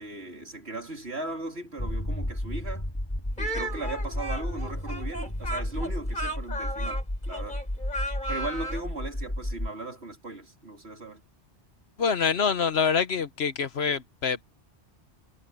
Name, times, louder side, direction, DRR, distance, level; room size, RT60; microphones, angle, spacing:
voice 1, 0.0-2.9 3.4-7.6 8.3-11.2, right 2 dB, 60° right, 3.8 m, -38 dB
sound 1, 1.8-9.7, left 1 dB, 20° left, 3.2 m, -32 dB
Speech, 3.4-8.9, right 1 dB, 40° left, 4.7 m, -35 dB
voice 2, 12.0-14.4, left 6 dB, 60° left, 1.2 m, -26 dB
omnidirectional pair, 1.2 m